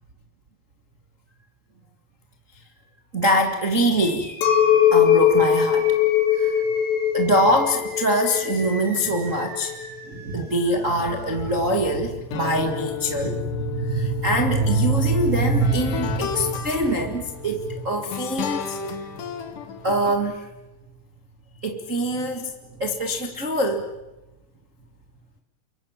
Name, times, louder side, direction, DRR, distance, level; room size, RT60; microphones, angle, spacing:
voice 1, 3.1-4.3 4.9-5.9 6.3-6.6 7.1-9.8 10.0-19.0 19.8-20.5 21.6-22.5 22.8-23.9, right 1 dB, 75° right, 3 dB, 0.7 m, -23 dB
sound 1, 4.0-11.9, left 1 dB, ahead, 7.6 m, -39 dB
Chink clink, 4.4-9.9, left 9 dB, 80° left, 3.7 m, -20 dB
sound 2, 10.7-20.2, left 8 dB, 60° left, 2.6 m, -34 dB
28.5 x 23.5 x 7.4 m, 1.1 s
omnidirectional pair, 5.0 m